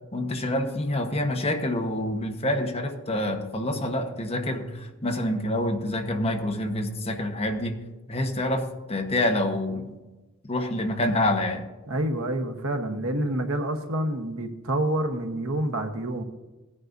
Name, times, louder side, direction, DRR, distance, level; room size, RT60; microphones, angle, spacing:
voice 1, 0.1-7.8 8.1-10.0 10.5-11.7, left 1 dB, 30° left, 3 dB, 1.1 m, -27 dB
voice 2, 11.9-16.2, right 1 dB, 85° right, 6 dB, 1.2 m, -28 dB
16.5 x 9.8 x 2.6 m, 1.1 s
head